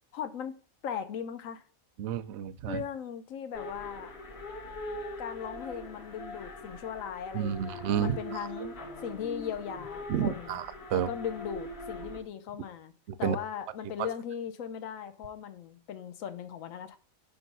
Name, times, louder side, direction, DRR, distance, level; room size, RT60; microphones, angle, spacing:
voice 1, 0.1-0.5 0.8-1.6 2.7-4.1 5.2-8.7 9.0-10.6 10.9-12.9 13.2-17.0, left 8 dB, 70° left, 1.1 m, -38 dB
voice 2, 2.0-2.8 7.3-8.2 10.1-11.1 13.1-13.4, right 9 dB, 65° right, 0.7 m, -30 dB
sound 1, 3.5-12.2, left 1 dB, 50° left, 1.4 m, -42 dB
5.2 x 3.8 x 5.9 m
omnidirectional pair, 1.5 m